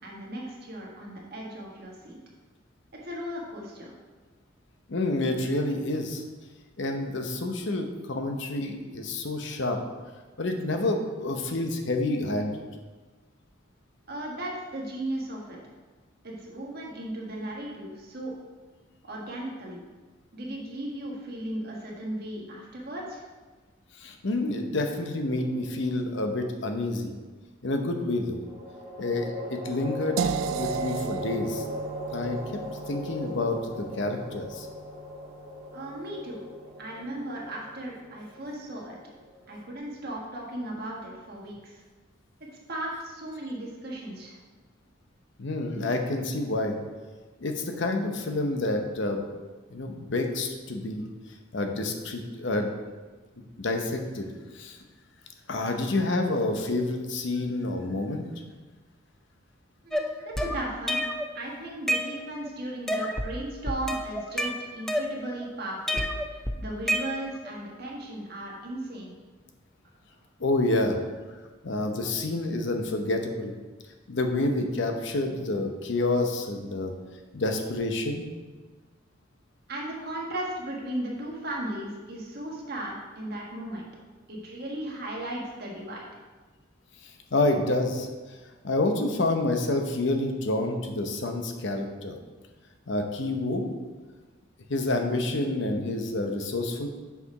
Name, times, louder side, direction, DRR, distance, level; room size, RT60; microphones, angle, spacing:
voice 1, 0.0-2.2 3.0-3.9 14.1-15.6 16.2-18.3 19.0-19.8 20.3-23.2 35.7-36.4 36.8-39.0 39.5-41.8 42.5-44.4 59.8-61.0 61.3-66.0 66.3-69.2 70.1-70.2 79.7-83.9 84.3-86.1, right 1 dB, 50° right, -2 dB, 1.5 m, -36 dB
voice 2, 4.9-6.2 6.8-9.8 10.4-12.6 24.0-27.1 27.6-28.4 29.0-30.2 30.6-31.6 32.1-32.4 32.9-34.7 45.4-46.8 47.4-49.2 49.7-51.1 51.5-52.7 53.6-54.3 54.5-54.8 55.5-58.3 70.4-71.0 71.6-73.5 74.1-76.9 77.3-78.2 87.0-88.1 88.6-92.1 92.9-93.7 94.7-96.9, left 2 dB, 65° left, 4 dB, 0.8 m, -28 dB
sound 1, 25.3-26.2 28.4-39.7, left 1 dB, 20° right, 1.4 m, -39 dB
sound 2, 30.2-36.1, right 7 dB, 85° right, 0.3 m, -35 dB
sound 3, 59.9-61.3 61.7-62.5 62.9-63.3 63.7-65.4 65.9-67.5, equal, ahead, 0.4 m, -29 dB
6.9 x 4.9 x 4.8 m, 1.3 s
head